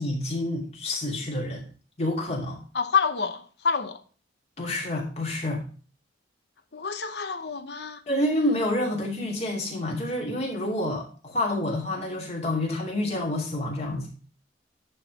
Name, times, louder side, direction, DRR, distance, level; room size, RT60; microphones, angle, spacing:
voice 1, 0.0-1.6 2.0-2.6 4.6-5.6 8.1-14.1, left 1 dB, 35° left, 2.6 m, -28 dB
voice 2, 2.7-4.0 6.7-8.0, left 6 dB, 65° left, 0.9 m, -27 dB
10.5 x 3.7 x 5.9 m
head